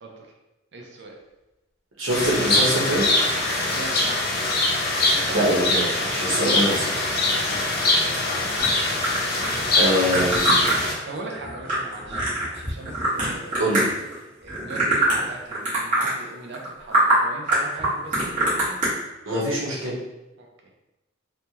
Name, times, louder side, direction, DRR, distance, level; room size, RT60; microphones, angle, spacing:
voice 1, 0.7-1.2 3.7-4.2 4.9-5.7 8.0-8.3 8.8-9.6 11.0-13.9 14.4-18.8 20.4-20.5, right 2 dB, 60° right, 1 dB, 0.5 m, -39 dB
voice 2, 2.0-3.0 5.0-6.9 9.7-10.8 13.6-13.9 19.3-20.0, right 1 dB, 80° right, -5 dB, 1.0 m, -24 dB
sound 1, 2.1-10.9, left 2 dB, 55° left, 0.6 m, -23 dB
sound 2, 8.6-14.1 14.5-15.3 15.5-16.1 16.5-16.7 16.9-17.2 17.5-18.9, right 2 dB, 40° right, 1.4 m, -23 dB
3.2 x 2.1 x 2.8 m, 1.0 s
head